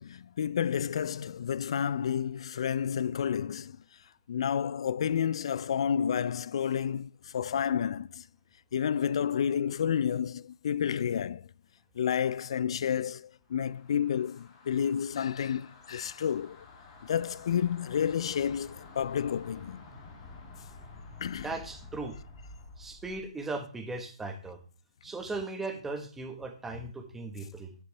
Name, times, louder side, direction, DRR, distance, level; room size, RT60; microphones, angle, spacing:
voice 1, 0.0-3.8 4.3-8.2 8.7-11.5 12.0-16.6 17.0-19.8 21.2-21.5, left 8 dB, 55° left, 0.4 m, -30 dB
sound 1, 13.5-23.3, left 3 dB, 25° left, 2.5 m, -50 dB
voice 2, 21.4-22.1 22.8-24.6 25.0-27.7, right 3 dB, 5° right, 1.4 m, -37 dB
11.0 x 6.7 x 3.3 m
hypercardioid pair, 145°, 3 cm